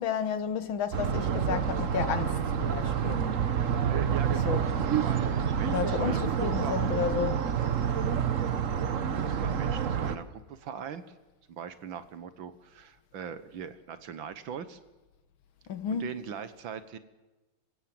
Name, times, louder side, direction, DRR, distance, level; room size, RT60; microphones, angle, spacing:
voice 1, 0.0-3.3 4.5-4.6 5.6-7.4 15.7-16.1, left 7 dB, 70° left, 1.9 m, -32 dB
sound 1, 0.9-10.2, right 8 dB, 50° right, 1.1 m, -28 dB
voice 2, 3.9-5.3 5.6-6.8 9.2-11.0 11.5-14.8 15.9-17.0, right 7 dB, 65° right, 1.8 m, -40 dB
26.5 x 16.0 x 7.7 m
omnidirectional pair, 2.4 m